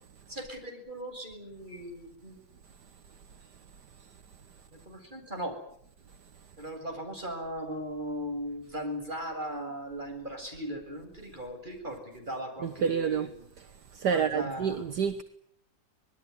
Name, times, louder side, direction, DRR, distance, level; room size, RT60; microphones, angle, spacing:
voice 1, 0.3-2.4 4.7-5.5 6.6-13.5 14.1-14.9, equal, 25° right, 7.6 m, -38 dB
voice 2, 12.6-13.3 13.9-15.2, right 7 dB, 65° right, 1.8 m, -28 dB
26.0 x 20.5 x 9.7 m
omnidirectional pair, 2.0 m